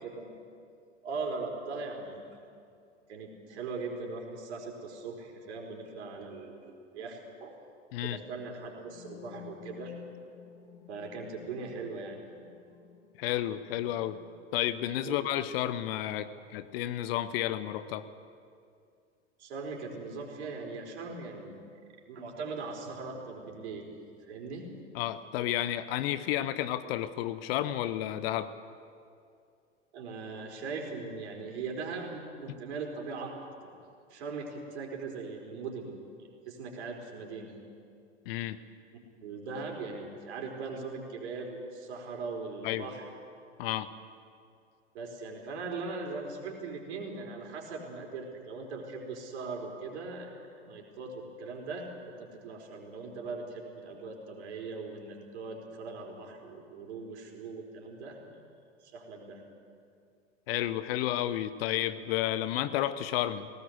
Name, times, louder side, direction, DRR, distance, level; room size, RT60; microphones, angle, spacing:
voice 1, 0.0-0.4 1.0-2.3 3.1-7.5 8.0-9.9 10.9-12.3 15.0-15.2 19.4-21.7 22.1-23.9 24.3-24.7 29.9-33.3 33.6-33.7 34.1-37.6 39.2-43.1 44.9-50.3 50.6-58.4 58.8-59.4, right 4 dB, 60° right, 1 dB, 4.6 m, -40 dB
Volumes of Echo Pad, 8.8-16.6, left 10 dB, 75° left, 2.1 m, -53 dB
voice 2, 13.2-14.2 14.5-18.1 24.9-28.5 38.3-38.6 42.6-42.9 43.6-43.9 60.5-63.5, left 13 dB, 50° left, 14 dB, 1.0 m, -31 dB
18.5 x 18.0 x 8.1 m, 2.4 s
hypercardioid pair, 95°, 37 cm